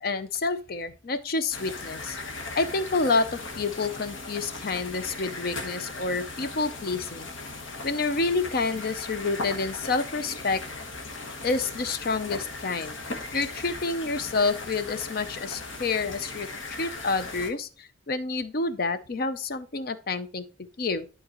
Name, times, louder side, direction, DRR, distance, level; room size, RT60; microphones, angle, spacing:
voice 1, 0.0-2.2 2.6-7.3 7.8-10.6 11.4-12.9 13.3-20.4 20.8-21.1, left 3 dB, 50° left, 0.6 m, -28 dB
sound 1, 1.5-17.5, left 3 dB, 80° left, 1.2 m, -38 dB
11.5 x 3.9 x 3.0 m
head